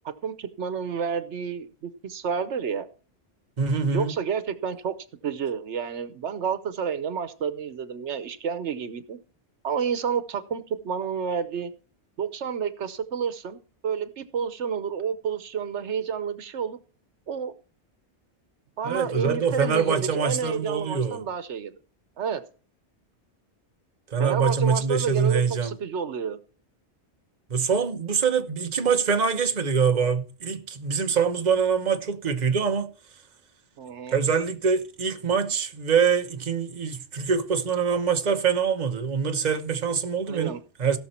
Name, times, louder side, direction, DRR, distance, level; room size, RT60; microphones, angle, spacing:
voice 1, 0.2-2.9 3.9-5.0 5.2-9.2 9.6-11.7 12.2-16.8 17.3-17.5 18.8-21.7 22.2-22.4 24.2-26.4 33.8-34.2 40.3-40.6, right 7 dB, 85° right, 1.2 m, -30 dB
voice 2, 3.6-4.1 18.8-21.2 24.1-25.7 27.5-32.9 34.1-41.0, right 6 dB, 40° right, 1.1 m, -24 dB
17.0 x 6.5 x 4.4 m
omnidirectional pair, 1.2 m